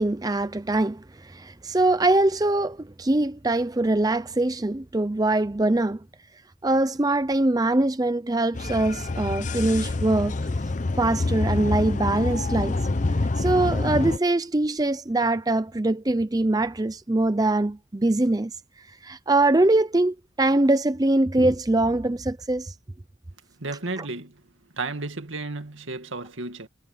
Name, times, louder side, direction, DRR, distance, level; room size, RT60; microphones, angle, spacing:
voice 1, 0.0-6.0 6.6-10.4 11.0-12.8 13.4-18.5 19.0-22.7, right 2 dB, 20° right, 0.5 m, -23 dB
sound 1, 8.5-14.2, left 2 dB, 40° left, 0.7 m, -26 dB
voice 2, 23.6-24.4 24.7-26.7, right 3 dB, 75° right, 2.1 m, -33 dB
head